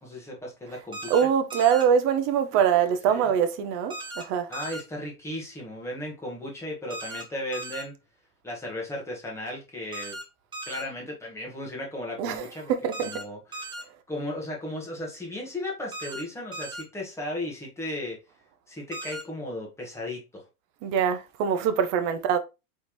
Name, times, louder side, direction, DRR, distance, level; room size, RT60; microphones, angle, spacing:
voice 1, 0.0-1.1 3.1-3.3 4.5-7.9 8.4-10.2 10.6-12.7 13.0-13.7 14.1-18.2 18.7-20.4, left 1 dB, 5° left, 1.4 m, -35 dB
sound 1, 0.9-1.2 1.5-1.8 3.9-4.2 4.5-4.8 6.9-7.2 7.5-7.8 9.9-10.2 10.5-10.8 12.9-13.2 13.5-13.8 15.9-16.2 16.5-16.8 18.9-19.2, right 2 dB, 10° right, 1.3 m, -37 dB
voice 2, 1.1-4.5 12.2-13.1 20.8-22.4, right 8 dB, 30° right, 0.6 m, -24 dB
4.1 x 3.5 x 3.0 m
supercardioid pair, 140°, 46 cm